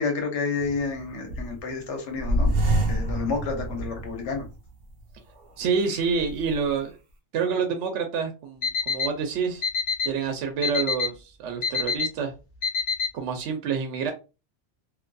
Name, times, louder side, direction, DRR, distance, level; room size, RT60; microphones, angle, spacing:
voice 1, 0.0-4.5, left 4 dB, 75° left, 1.1 m, -30 dB
sound 1, 0.6-1.7 2.2-4.6 5.0-5.1 5.8-6.5, right 1 dB, 55° right, 0.7 m, -27 dB
voice 2, 5.6-6.9 7.3-9.7 10.0-12.3 13.1-14.1, right 5 dB, 80° right, 0.9 m, -27 dB
Alarm, 8.6-9.1 9.6-10.1 10.6-11.1 11.6-12.1 12.6-13.1, left 6 dB, 55° left, 0.6 m, -25 dB
2.6 x 2.5 x 2.2 m
omnidirectional pair, 1.2 m